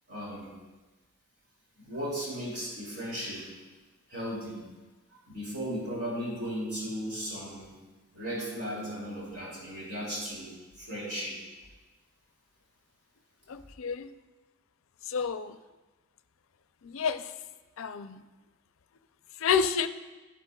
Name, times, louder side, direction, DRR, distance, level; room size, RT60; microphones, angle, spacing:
voice 1, 0.1-0.5 1.8-3.5 4.1-4.6 5.3-7.7 8.1-11.4, equal, 55° right, -5 dB, 2.7 m, -36 dB
voice 2, 13.5-14.1 15.1-15.6 16.8-17.2 17.8-18.2 19.4-19.9, left 6 dB, 70° left, 11 dB, 0.5 m, -29 dB
11.0 x 10.5 x 2.3 m, 1.2 s
head